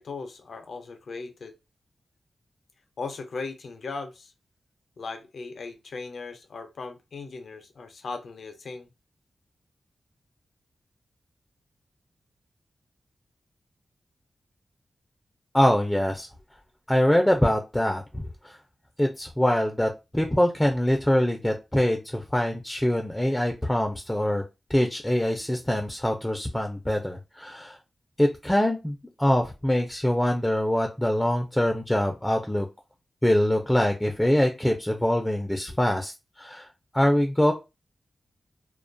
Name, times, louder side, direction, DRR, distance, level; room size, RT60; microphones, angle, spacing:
voice 1, 0.0-1.6 3.0-4.3 5.0-8.9, left 4 dB, 75° left, 0.5 m, -38 dB
voice 2, 15.5-16.3 16.9-18.6 19.0-24.4 24.7-27.8 28.2-32.7 33.2-36.7 36.9-37.5, left 1 dB, 10° left, 0.4 m, -24 dB
2.2 x 2.2 x 2.5 m
cardioid pair, 60°, 0 cm